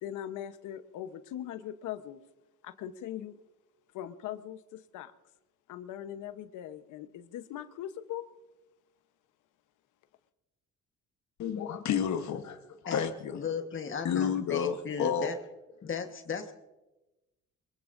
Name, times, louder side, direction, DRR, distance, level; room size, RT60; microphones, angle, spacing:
voice 1, 0.0-2.2 2.6-3.4 3.9-5.1 5.7-8.3, left 11 dB, 90° left, 11 dB, 1.0 m, -40 dB
voice 2, 11.4-13.5 14.0-15.3, left 7 dB, 70° left, 6 dB, 1.2 m, -31 dB
voice 3, 12.9-15.4 15.8-16.5, left 6 dB, 40° left, 6 dB, 1.4 m, -36 dB
23.0 x 21.5 x 2.6 m, 1.0 s
cardioid pair, 90°, 30 cm